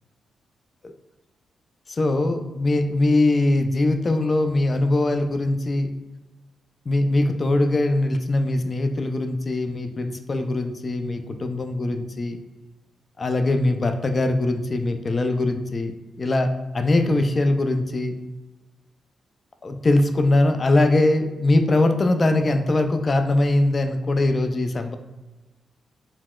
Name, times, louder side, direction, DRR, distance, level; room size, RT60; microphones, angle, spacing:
voice 1, 1.9-5.9 6.9-12.4 13.2-15.9 16.2-18.1 19.6-25.0, left 2 dB, 45° left, 7 dB, 0.3 m, -21 dB
4.0 x 2.0 x 2.2 m, 1.1 s
supercardioid pair, 55°, 0 cm